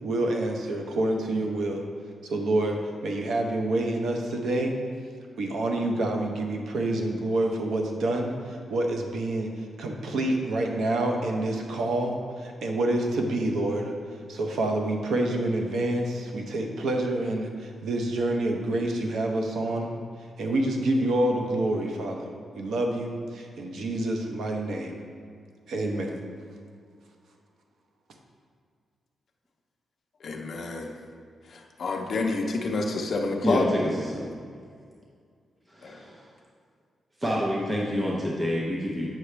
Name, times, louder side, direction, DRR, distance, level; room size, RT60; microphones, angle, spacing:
voice 1, 0.0-1.8 2.2-4.8 5.4-9.5 9.8-13.9 14.3-20.0 20.4-24.9 25.7-26.2, right 1 dB, 75° right, 2 dB, 0.8 m, -27 dB
voice 2, 30.2-30.9 31.5-33.7 35.8-36.0, left 3 dB, 50° left, 2 dB, 0.7 m, -29 dB
voice 3, 33.4-34.3 35.7-36.2 37.2-39.1, equal, 15° right, -4 dB, 0.7 m, -27 dB
8.3 x 6.0 x 3.3 m, 2.1 s
wide cardioid pair, 165°, 0 cm